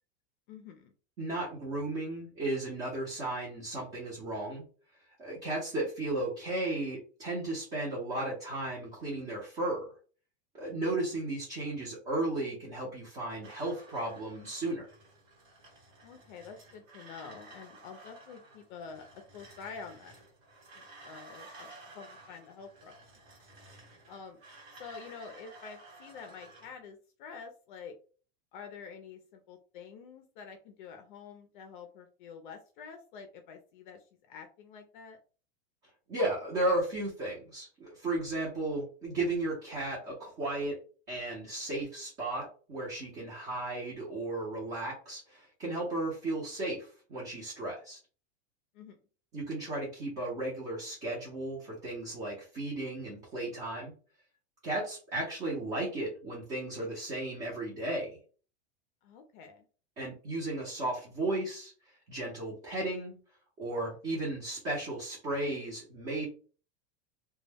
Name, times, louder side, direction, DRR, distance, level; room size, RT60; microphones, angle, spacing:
voice 1, 0.5-0.9 16.0-20.2 20.8-22.9 24.1-24.4 24.7-27.9 28.5-35.2 48.7-49.0 59.0-59.6, left 5 dB, 50° left, 4 dB, 0.4 m, -48 dB
voice 2, 1.2-4.6 5.2-9.9 10.5-14.9 36.1-40.8 41.1-48.0 49.3-53.9 54.6-58.2 60.0-61.7 62.1-63.1 63.6-66.3, right 2 dB, 20° right, -4 dB, 0.6 m, -34 dB
sound 1, 13.4-26.7, right 2 dB, 55° right, 1.1 m, -54 dB
2.2 x 2.0 x 3.2 m, 0.40 s
supercardioid pair, 165°, 32 cm